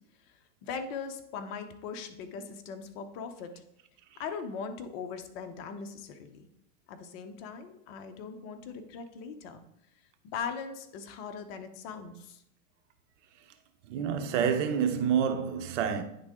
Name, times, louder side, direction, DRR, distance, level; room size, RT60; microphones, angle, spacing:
voice 1, 0.6-3.5 4.2-6.4 6.9-9.6 10.3-12.4, left 6 dB, 45° left, 0.9 m, -40 dB
voice 2, 13.9-16.0, right 7 dB, 60° right, 0.9 m, -28 dB
9.6 x 3.7 x 3.7 m
hypercardioid pair, 125°, 41 cm